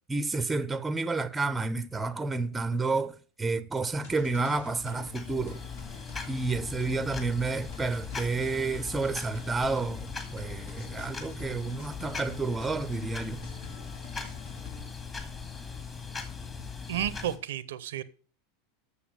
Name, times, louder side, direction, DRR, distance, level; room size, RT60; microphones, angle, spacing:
voice 1, 0.1-5.7 6.3-13.5, right 3 dB, 10° right, 0.6 m, -30 dB
sound 1, 4.0-14.9, left 5 dB, 70° left, 2.0 m, -47 dB
sound 2, 4.7-17.4, left 5 dB, 25° left, 2.1 m, -40 dB
voice 2, 16.9-18.0, right 11 dB, 75° right, 0.5 m, -32 dB
7.0 x 6.8 x 7.3 m
hypercardioid pair, 95°, 0 cm